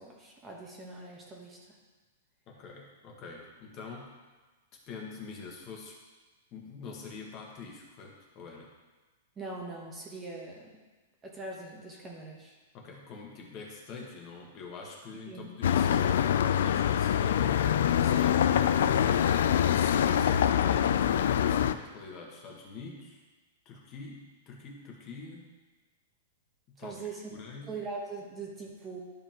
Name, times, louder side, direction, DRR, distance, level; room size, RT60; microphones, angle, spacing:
voice 1, 0.0-1.6 9.4-10.6 11.2-12.5 15.3-15.5 26.8-27.4 27.7-29.0, right 3 dB, 15° right, -2 dB, 1.1 m, -41 dB
voice 2, 2.5-4.1 4.9-6.0 6.5-8.7 12.7-17.6 18.0-18.7 19.7-21.0 21.5-23.2 23.6-25.4 26.7-27.0 27.3-27.8, left 4 dB, 30° left, -1 dB, 1.3 m, -45 dB
sound 1, 15.6-21.7, left 9 dB, 70° left, 0.3 m, -25 dB
12.0 x 5.2 x 3.0 m, 1.2 s
supercardioid pair, 160°, 0 cm